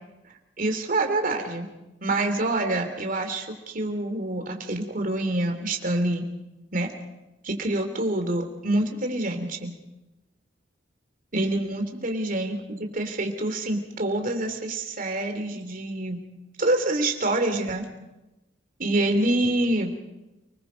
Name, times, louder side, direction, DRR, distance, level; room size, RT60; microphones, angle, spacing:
voice 1, 0.6-1.6 2.0-6.3 6.7-6.9 7.4-9.7 11.3-16.2 16.6-17.9 18.8-19.9, right 1 dB, 50° right, 5 dB, 3.2 m, -26 dB
29.5 x 20.5 x 5.2 m, 1.0 s
head